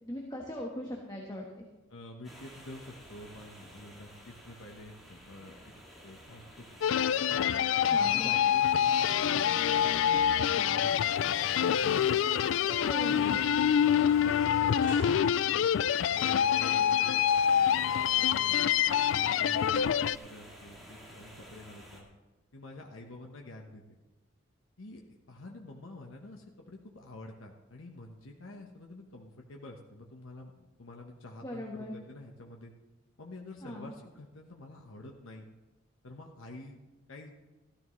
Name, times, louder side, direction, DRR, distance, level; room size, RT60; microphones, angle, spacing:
voice 1, 0.0-1.7 7.9-8.3 12.7-13.4 31.4-32.0 33.6-33.9, left 1 dB, 20° left, -1 dB, 1.3 m, -39 dB
voice 2, 1.9-5.7 6.0-6.7 6.9-7.1 7.9-11.5 12.8-15.7 16.1-18.6 19.1-22.1 22.5-24.0 24.8-32.7 33.2-35.5 36.0-36.8 37.1-37.3, left 1 dB, 85° left, 1 dB, 1.1 m, -48 dB
sound 1, 2.2-22.0, equal, ahead, 2.2 m, -51 dB
sound 2, 6.8-20.2, left 9 dB, 70° left, 0.3 m, -26 dB
sound 3, 12.9-19.8, right 3 dB, 70° right, 1.3 m, -51 dB
14.5 x 13.0 x 3.2 m, 1.2 s
head